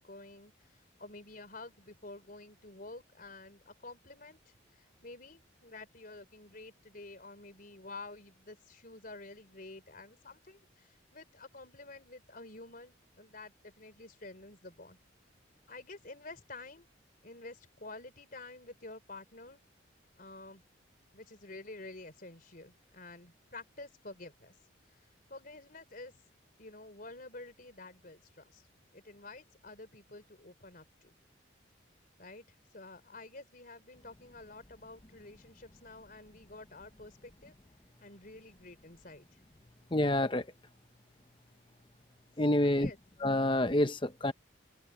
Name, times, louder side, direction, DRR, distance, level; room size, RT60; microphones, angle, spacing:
voice 1, 0.0-15.0 15.7-16.9 17.2-19.6 20.2-20.6 21.1-24.5 25.3-26.2 26.6-28.7 28.9-31.1 32.2-32.5 32.7-37.6 38.0-39.4 42.6-43.0, left 2 dB, 45° left, 4.0 m, -50 dB
voice 2, 39.9-40.4 42.4-42.9 43.2-44.3, left 1 dB, 25° left, 0.9 m, -27 dB
open air
head